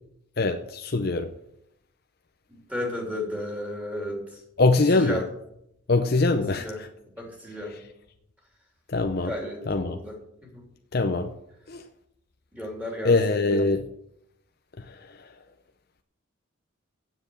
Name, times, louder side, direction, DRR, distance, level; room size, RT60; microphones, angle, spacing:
voice 1, 0.4-1.3 4.6-5.2 5.9-6.9 8.9-9.3 9.7-10.0 10.9-11.3 11.7-11.8 13.0-13.9 14.8-15.3, left 3 dB, 50° left, 5 dB, 0.6 m, -23 dB
voice 2, 2.5-4.2 5.0-5.2 6.5-6.8 7.2-7.7 9.3-10.6 12.5-13.1, left 1 dB, 5° right, -1 dB, 3.2 m, -34 dB
9.1 x 7.8 x 8.0 m, 0.78 s
head